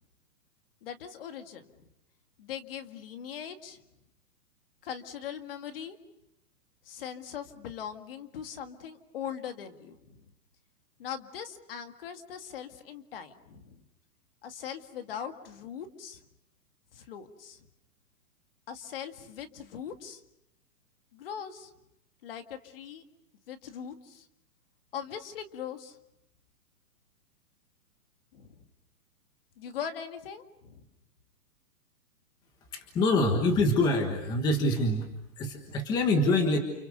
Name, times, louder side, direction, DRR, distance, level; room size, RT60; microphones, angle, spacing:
voice 1, 0.8-1.7 2.4-3.8 4.8-6.0 6.9-10.2 11.0-13.8 14.4-16.2 16.9-17.6 18.7-20.2 21.1-21.7 22.2-23.0 23.5-24.2 24.9-26.0 28.3-28.6 29.6-30.8, left 8 dB, 35° left, 7 dB, 2.1 m, -40 dB
voice 2, 32.7-35.1 35.4-36.6, left 2 dB, 10° left, 5 dB, 1.4 m, -25 dB
29.5 x 29.5 x 6.7 m, 0.84 s
hypercardioid pair, 170°, 47 cm